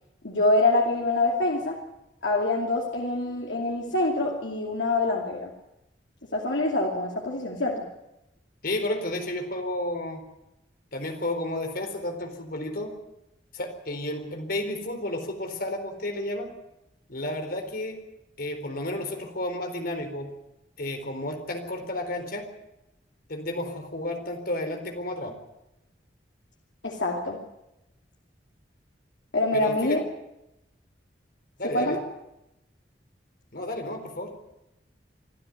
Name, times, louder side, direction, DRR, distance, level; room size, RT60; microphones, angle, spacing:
voice 1, 0.2-1.8 2.2-5.5 6.3-7.9 26.8-27.4 29.3-30.0 31.7-32.0, left 2 dB, 90° left, 0 dB, 2.7 m, -25 dB
voice 2, 8.6-10.2 10.9-12.9 13.5-16.5 17.1-18.0 18.4-20.3 20.8-22.5 23.3-25.3 29.5-30.0 31.6-32.0 33.5-34.3, left 1 dB, 55° left, 5 dB, 4.1 m, -32 dB
24.5 x 13.0 x 9.7 m, 0.90 s
head